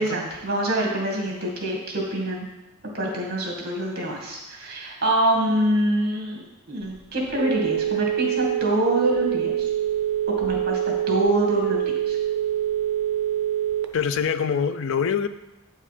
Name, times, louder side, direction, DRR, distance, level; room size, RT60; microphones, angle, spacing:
voice 1, 0.0-2.5 2.9-9.7 10.3-12.2, right 1 dB, 50° right, -2 dB, 2.3 m, -25 dB
Telephone, 6.8-14.2, right 11 dB, 65° right, 0.7 m, -25 dB
voice 2, 13.9-15.3, left 7 dB, 65° left, 12 dB, 0.5 m, -24 dB
8.5 x 5.5 x 5.0 m, 1.0 s
head